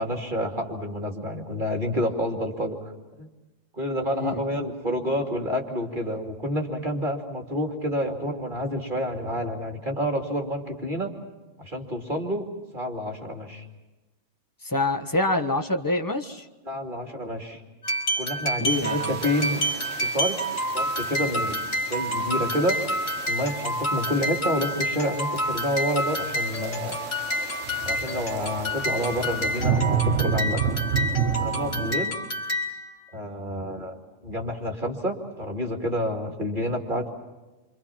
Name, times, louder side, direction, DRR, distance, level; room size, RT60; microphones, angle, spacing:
voice 1, 0.0-2.9 3.2-3.3 3.7-11.1 11.6-12.4 12.7-13.6 16.6-17.6 18.2-19.6 20.0-20.4 20.7-21.6 21.9-22.8 23.3-27.0 27.8-30.7 31.4-32.2 33.1-34.0 34.2-37.1, equal, 40° right, 2 dB, 2.8 m, -28 dB
voice 2, 14.6-16.5 18.6-19.2, left 2 dB, 15° left, 5 dB, 1.5 m, -26 dB
sound 1, 17.8-32.9, equal, 75° left, 5.1 m, -29 dB
sound 2, 18.7-32.0, right 8 dB, 75° right, 1.4 m, -32 dB
28.0 x 26.0 x 5.9 m, 1.1 s
omnidirectional pair, 1.3 m